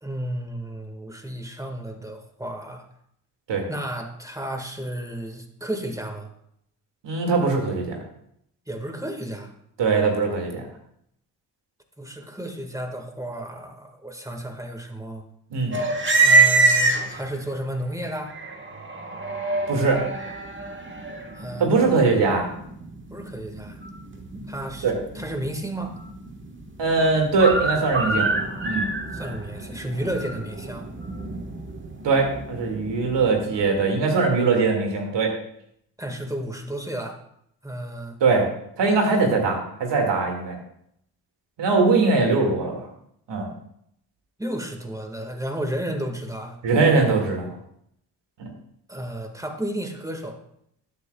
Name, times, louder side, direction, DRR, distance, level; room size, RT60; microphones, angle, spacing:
voice 1, 0.0-2.9 3.7-6.3 8.7-9.5 12.0-15.2 16.2-18.3 21.4-22.0 23.1-23.8 24.5-26.0 29.1-30.9 36.0-37.2 37.6-38.2 44.4-46.6 48.9-50.4, right 1 dB, 5° right, 4 dB, 1.8 m, -32 dB
voice 2, 7.0-8.0 9.8-10.7 15.5-15.8 19.7-20.0 21.6-22.5 24.8-24.9 26.8-28.3 28.6-28.9 32.0-35.3 38.2-38.4 38.8-40.6 41.6-42.9 43.3-43.5 46.6-47.5 48.4-48.5, right 4 dB, 70° right, 2 dB, 2.3 m, -21 dB
sound 1, 15.7-17.5 18.0-33.8, right 3 dB, 25° right, 1.4 m, -26 dB
12.5 x 8.5 x 2.3 m, 0.73 s
supercardioid pair, 50°, 43 cm